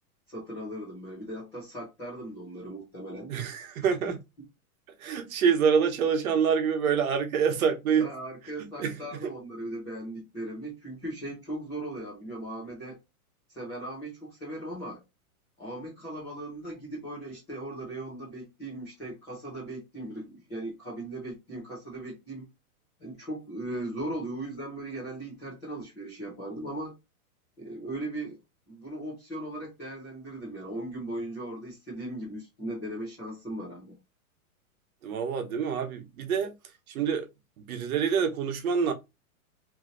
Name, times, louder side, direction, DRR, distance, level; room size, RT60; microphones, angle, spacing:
voice 1, 0.3-3.3 8.0-13.0 13.5-15.0 15.6-22.5 23.0-26.9 27.6-28.4 28.7-33.9, right 1 dB, 5° left, 0.3 m, -38 dB
voice 2, 3.3-4.2 5.0-8.1 8.6-9.0 35.0-36.5 36.9-37.3 37.6-38.9, right 7 dB, 70° right, 0.9 m, -26 dB
3.0 x 2.8 x 2.5 m
hypercardioid pair, 155°, 44 cm